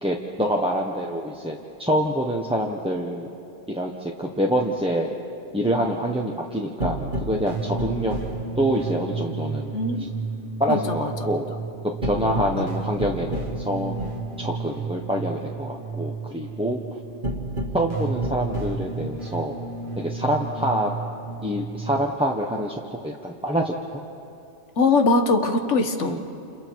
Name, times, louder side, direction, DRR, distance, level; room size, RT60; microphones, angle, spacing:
voice 1, 0.0-3.3 3.7-5.1 5.5-8.1 8.6-9.7 10.6-11.5 11.8-13.9 14.4-16.8 17.7-19.6 20.0-20.9 21.4-23.7 26.0-26.2, equal, 5° right, -1 dB, 1.0 m, -26 dB
sound 1, 6.8-22.0, right 3 dB, 45° right, 1.6 m, -31 dB
voice 2, 9.7-10.1 10.7-11.1 12.1-12.6 24.8-26.2, left 3 dB, 80° left, 6 dB, 1.6 m, -22 dB
29.5 x 28.5 x 4.7 m, 2.7 s
omnidirectional pair, 1.2 m